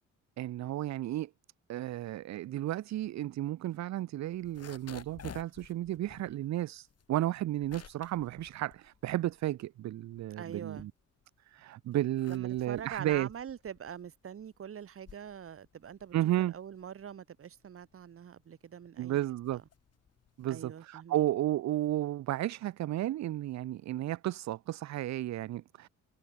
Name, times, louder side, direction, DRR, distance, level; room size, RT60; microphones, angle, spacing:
voice 1, 0.4-1.3 1.7-10.9 11.5-13.3 16.1-16.5 19.0-19.6 20.4-25.9, right 14 dB, 65° right, 0.7 m, -33 dB
sound 1, 4.3-9.6 10.0-11.4 11.9-20.6, left 8 dB, 55° left, 7.9 m, -54 dB
voice 2, 10.4-10.9 12.3-19.2 19.5-19.6 20.5-21.2, right 8 dB, 45° right, 1.7 m, -44 dB
cardioid pair, 90°, 30 cm